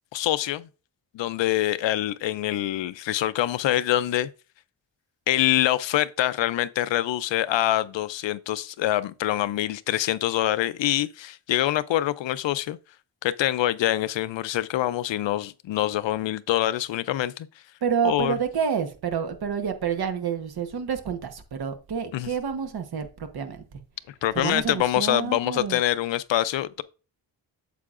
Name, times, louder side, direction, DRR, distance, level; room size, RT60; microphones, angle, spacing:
voice 1, 0.1-0.7 1.1-4.3 5.3-12.8 13.2-17.5 18.0-18.3 22.1-22.3 24.2-26.8, left 13 dB, 75° left, 0.5 m, -25 dB
voice 2, 17.8-23.8 24.3-25.8, right 7 dB, 55° right, 1.1 m, -28 dB
8.3 x 7.5 x 2.5 m
wide cardioid pair, 175°, 44 cm